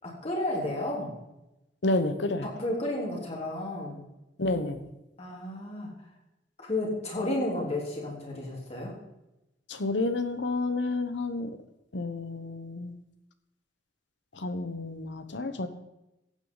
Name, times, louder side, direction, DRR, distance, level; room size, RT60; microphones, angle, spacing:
voice 1, 0.0-1.1 2.4-4.0 5.2-5.9 6.6-8.9, left 1 dB, 35° left, -2 dB, 3.5 m, -32 dB
voice 2, 1.8-2.5 4.4-4.9 9.7-11.5 11.9-13.0 14.4-15.7, left 2 dB, 75° left, 10 dB, 1.0 m, -30 dB
15.0 x 8.6 x 4.0 m, 0.93 s
head